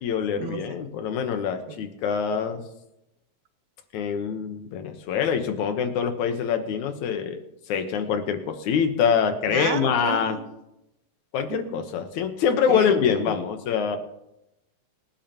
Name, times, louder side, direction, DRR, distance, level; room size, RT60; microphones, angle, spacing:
voice 1, 0.0-2.6 3.9-7.4 7.7-10.4 11.3-14.0, left 7 dB, 85° left, 7 dB, 2.6 m, -25 dB
voice 2, 9.5-10.4 11.5-11.8 12.7-12.9 13.2-13.3, right 9 dB, 85° right, 9 dB, 2.4 m, -32 dB
25.0 x 10.5 x 3.0 m, 0.88 s
omnidirectional pair, 3.3 m